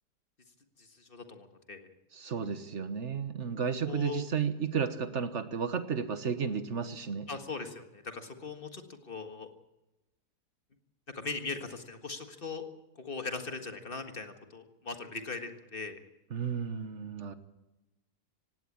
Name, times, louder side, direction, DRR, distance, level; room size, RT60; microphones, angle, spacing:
voice 1, 0.8-1.9 3.8-4.3 7.3-9.5 11.1-12.6 13.0-16.0, left 4 dB, 35° left, 6 dB, 1.8 m, -40 dB
voice 2, 2.1-7.3 16.3-17.3, right 6 dB, 45° right, 11 dB, 1.4 m, -33 dB
17.5 x 17.0 x 8.7 m, 0.97 s
omnidirectional pair, 1.8 m